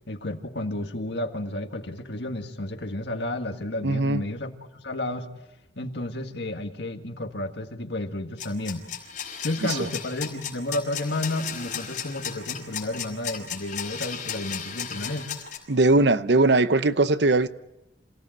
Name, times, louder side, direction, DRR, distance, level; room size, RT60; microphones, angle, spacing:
voice 1, 0.1-4.5 4.8-5.3 5.8-8.8 9.4-15.3, left 1 dB, 65° left, 1.8 m, -31 dB
voice 2, 3.8-4.2 9.6-9.9 15.7-17.5, right 2 dB, 65° right, 0.8 m, -20 dB
sound 1, 8.4-15.6, left 8 dB, 40° left, 5.0 m, -35 dB
27.5 x 17.0 x 7.9 m
head